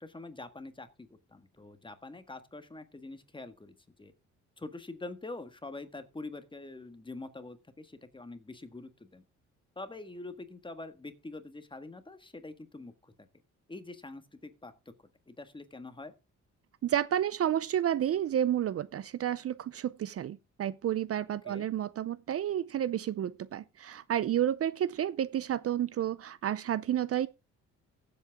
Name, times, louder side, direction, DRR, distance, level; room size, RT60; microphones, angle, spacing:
voice 1, 0.0-4.1 4.6-9.2 9.7-13.1 13.7-14.9 15.3-16.1 21.4-21.7, left 2 dB, 15° left, 1.7 m, -45 dB
voice 2, 16.8-27.3, right 10 dB, 50° right, 0.6 m, -31 dB
15.0 x 8.0 x 3.6 m
cardioid pair, 90°, 30 cm